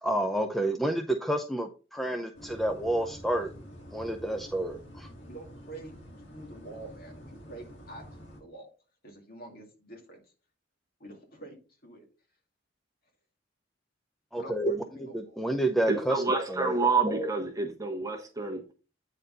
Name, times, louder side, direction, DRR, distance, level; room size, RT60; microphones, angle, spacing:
voice 1, 0.0-3.5 3.9-5.1 14.3-14.7 15.4-16.2 16.5-16.7, right 1 dB, ahead, 0.6 m, -29 dB
sound 1, 2.3-8.4, equal, 70° left, 2.4 m, -48 dB
voice 2, 5.2-6.0 6.3-8.1 8.4-8.7 9.0-10.3 11.0-12.1 14.4-15.6, right 2 dB, 55° left, 2.3 m, -46 dB
voice 3, 15.9-18.7, right 4 dB, 20° right, 1.3 m, -28 dB
8.8 x 4.2 x 3.9 m
head